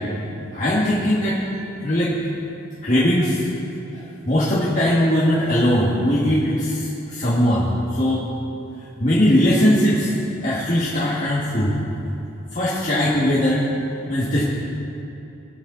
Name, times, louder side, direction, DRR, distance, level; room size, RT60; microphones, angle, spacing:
voice 1, 0.5-1.4 1.8-2.2 2.8-3.5 3.9-8.2 9.0-10.1 10.4-11.8 12.5-13.6 14.1-14.7, equal, 40° left, -8 dB, 1.9 m, -20 dB
23.5 x 8.4 x 4.0 m, 2.9 s
head